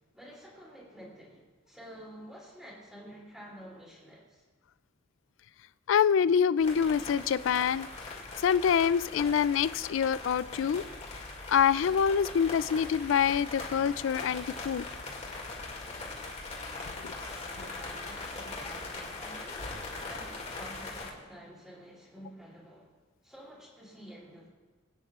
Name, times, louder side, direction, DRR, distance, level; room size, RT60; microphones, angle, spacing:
voice 1, 0.1-4.4 17.5-22.9 23.2-24.5, equal, 5° right, -5 dB, 2.9 m, -49 dB
voice 2, 5.9-7.9 8.4-10.8 11.5-14.9 17.0-17.1, left 7 dB, 65° left, 17 dB, 0.3 m, -26 dB
sound 1, 6.6-21.1, left 3 dB, 35° left, 2.2 m, -41 dB
22.0 x 9.4 x 2.4 m, 1.3 s
head